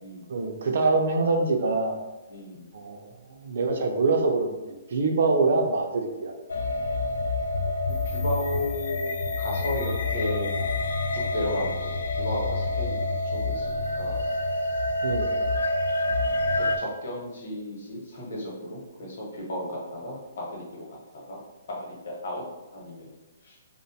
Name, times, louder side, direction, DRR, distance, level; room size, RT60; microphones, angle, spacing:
voice 1, 0.3-2.0 2.7-6.3 15.0-15.3, right 3 dB, 50° right, 3 dB, 0.3 m, -25 dB
voice 2, 2.3-2.7 8.0-10.5 11.1-14.2 16.6-21.4 21.7-22.4 22.7-23.6, left 1 dB, 50° left, -3 dB, 0.8 m, -34 dB
sound 1, 6.5-16.8, left 2 dB, 75° left, 0.3 m, -27 dB
2.5 x 2.1 x 2.7 m, 1.0 s
hypercardioid pair, 180°, 0 cm